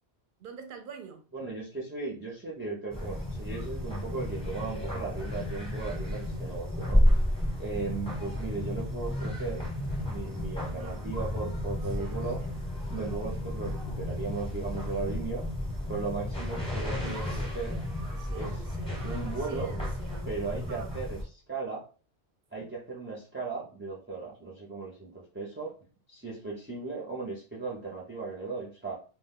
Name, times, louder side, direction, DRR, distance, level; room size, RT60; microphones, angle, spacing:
voice 1, 0.4-1.2 9.2-9.5 9.8-10.3 10.6-11.0 12.0-12.5 12.9-13.3 17.0-20.9, right 6 dB, 60° right, 0.6 m, -47 dB
voice 2, 1.3-7.0 7.6-9.7 10.0-12.4 12.9-15.4 15.8-17.8 18.3-18.6 19.0-19.7 20.3-21.8 22.5-25.7 26.1-28.9, right 4 dB, 20° right, 0.4 m, -37 dB
sound 1, 2.9-21.2, left 1 dB, 5° left, 0.8 m, -32 dB
2.3 x 2.2 x 3.5 m
omnidirectional pair, 1.1 m